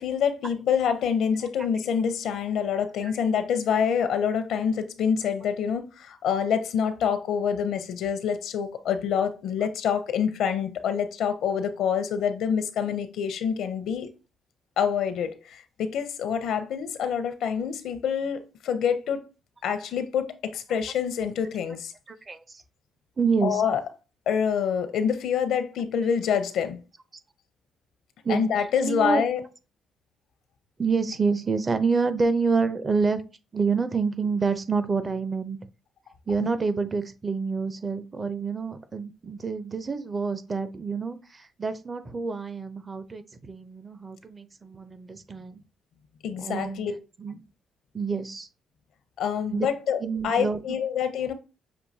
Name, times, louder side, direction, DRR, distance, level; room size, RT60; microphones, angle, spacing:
voice 1, 0.0-14.1 14.8-19.3 19.6-21.9 23.4-23.8 24.3-26.8 28.3-29.4 46.2-46.9 49.2-51.3, left 7 dB, 75° left, 0.6 m, -26 dB
voice 2, 22.1-22.6 23.2-23.6 28.2-28.4 28.8-29.2 30.8-33.2 33.5-35.6 36.3-45.6 46.4-46.9 47.2-47.4 47.9-48.5 49.5-49.7 50.0-50.8, right 4 dB, 30° right, 0.6 m, -27 dB
6.2 x 2.6 x 2.7 m
cardioid pair, 90°, 0 cm